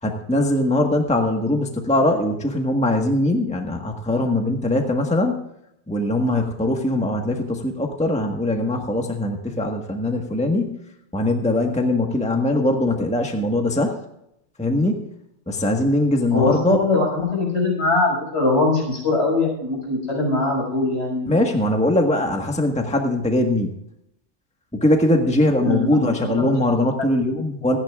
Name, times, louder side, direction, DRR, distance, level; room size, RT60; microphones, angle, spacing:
voice 1, 0.0-5.4 5.9-10.8 11.1-14.0 14.6-15.1 15.5-16.8 21.2-23.7 24.7-27.8, left 1 dB, 5° left, 2 dB, 1.5 m, -21 dB
voice 2, 16.3-21.3 25.6-26.5, left 3 dB, 65° left, -1 dB, 6.7 m, -22 dB
26.5 x 10.5 x 2.5 m, 0.78 s
omnidirectional pair, 1.2 m